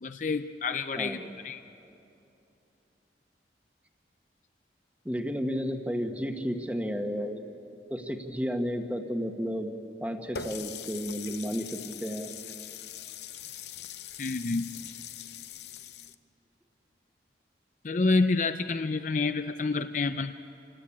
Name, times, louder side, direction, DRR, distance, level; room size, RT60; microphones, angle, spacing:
voice 1, 0.0-1.2 1.4-1.6 14.2-14.7 17.8-20.3, left 3 dB, 45° left, 9 dB, 0.5 m, -28 dB
voice 2, 0.9-1.3 5.0-7.4 7.9-9.7 10.0-12.3, equal, 10° right, 5 dB, 1.3 m, -32 dB
Water tap faucet, 10.4-16.1, left 8 dB, 75° left, 0.8 m, -42 dB
27.5 x 18.5 x 8.6 m, 2.8 s
head